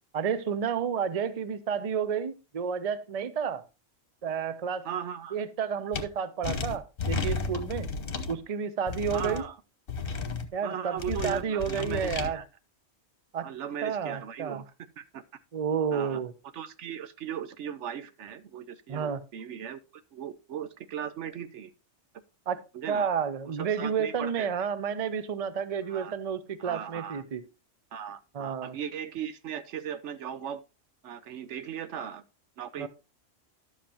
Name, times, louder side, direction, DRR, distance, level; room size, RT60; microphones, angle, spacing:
voice 1, 0.1-3.6 4.2-4.9 5.3-7.9 8.3-9.4 10.5-12.4 13.3-13.5 13.8-14.6 15.5-16.3 18.9-19.2 22.5-22.6 22.9-27.4 28.3-28.8 32.8-32.9, right 7 dB, 40° right, 0.6 m, -31 dB
voice 2, 4.8-5.4 9.1-9.6 10.6-12.5 13.4-14.6 15.0-15.2 15.9-16.2 16.5-21.7 22.7-23.1 23.6-24.5 25.9-26.2 26.6-27.2 27.9-30.6 31.0-32.2 32.6-32.9, right 9 dB, 70° right, 1.0 m, -38 dB
sound 1, 5.9-6.0 6.4-8.3 8.9-9.4 9.9-10.5 11.0-12.3, left 4 dB, 50° left, 1.2 m, -33 dB
11.5 x 7.4 x 2.9 m
omnidirectional pair, 1.3 m